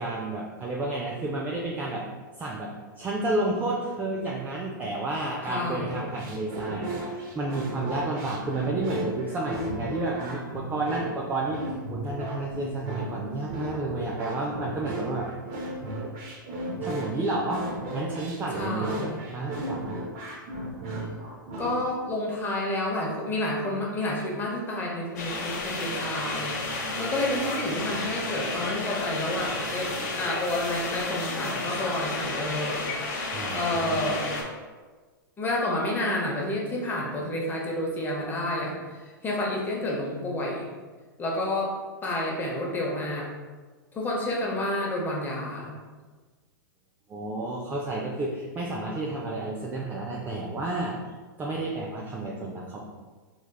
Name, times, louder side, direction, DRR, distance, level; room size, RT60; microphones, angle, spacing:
voice 1, 0.0-2.1 2.4-11.6 11.9-15.3 16.8-17.6 17.9-20.0 33.3-34.0 47.1-51.0 51.4-52.8, right 2 dB, 15° right, -2 dB, 0.4 m, -31 dB
voice 2, 5.4-6.0 18.5-19.2 21.6-32.8 33.5-34.2 35.4-40.7 41.2-41.7 42.0-43.3 43.9-45.7, left 1 dB, 15° left, -2 dB, 0.8 m, -30 dB
sound 1, 5.8-21.7, right 1 dB, 40° right, 0.8 m, -35 dB
sound 2, 25.2-34.4, left 2 dB, 55° left, 0.8 m, -32 dB
3.5 x 3.2 x 2.2 m, 1.4 s
hypercardioid pair, 105°, 11 cm